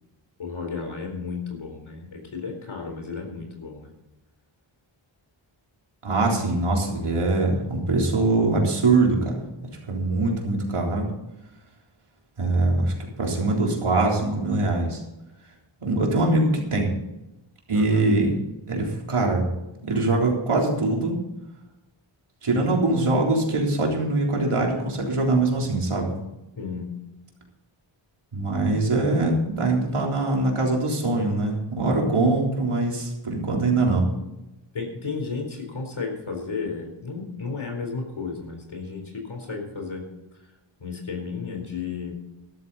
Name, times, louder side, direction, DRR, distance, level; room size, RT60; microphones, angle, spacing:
voice 1, 0.4-3.9 17.7-18.1 26.6-26.9 34.7-40.1 40.8-42.2, left 4 dB, 70° left, 2 dB, 4.2 m, -33 dB
voice 2, 6.0-9.4 9.9-11.1 12.4-15.0 15.8-16.9 17.7-18.3 18.7-19.5 19.8-21.2 22.4-26.2 28.3-34.1, right 2 dB, 85° right, -1 dB, 3.9 m, -23 dB
14.0 x 12.5 x 4.2 m, 0.96 s
wide cardioid pair, 90°, 49 cm